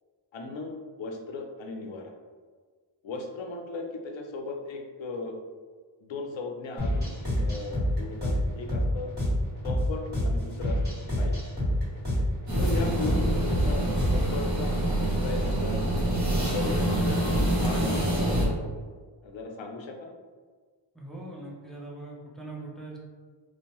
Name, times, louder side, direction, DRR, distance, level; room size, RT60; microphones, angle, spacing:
voice 1, 0.3-2.1 3.0-5.3 6.0-9.1 9.6-11.4 12.6-15.8 16.2-18.7 19.2-20.1, left 3 dB, 75° left, 3 dB, 0.5 m, -37 dB
sound 1, 6.8-14.4, equal, 20° right, 1.4 m, -28 dB
sound 2, 12.5-18.5, right 1 dB, 40° right, 0.8 m, -26 dB
voice 2, 20.9-23.0, right 2 dB, ahead, -4 dB, 0.5 m, -41 dB
2.6 x 2.1 x 2.9 m, 1.5 s
wide cardioid pair, 85°, 47 cm